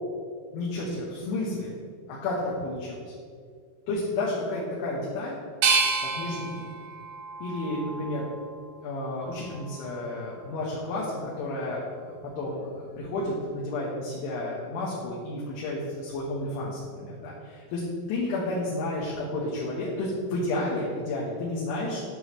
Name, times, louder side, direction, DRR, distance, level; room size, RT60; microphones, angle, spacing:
voice 1, 0.5-1.7 2.1-3.1 3.9-5.4 6.0-6.6 7.4-8.3 8.8-17.8 18.1-22.0, left 2 dB, 75° left, -5 dB, 3.4 m, -31 dB
sound 1, 5.6-8.5 9.1-9.9, right 4 dB, 75° right, 2.2 m, -29 dB
11.0 x 6.2 x 3.0 m, 2.1 s
omnidirectional pair, 5.7 m